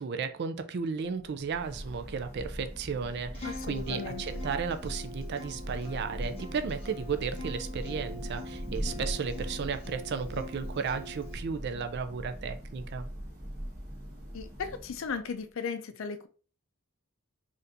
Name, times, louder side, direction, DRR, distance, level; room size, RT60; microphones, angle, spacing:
voice 1, 0.0-13.1, right 5 dB, 50° right, 0.3 m, -34 dB
Thunder / Rain, 1.0-15.4, equal, 30° right, 1.2 m, -40 dB
Acoustic guitar, 3.3-11.3, left 2 dB, 25° left, 0.7 m, -44 dB
voice 2, 3.4-4.2 14.3-16.3, left 5 dB, 60° left, 0.4 m, -36 dB
4.2 x 2.5 x 2.6 m
head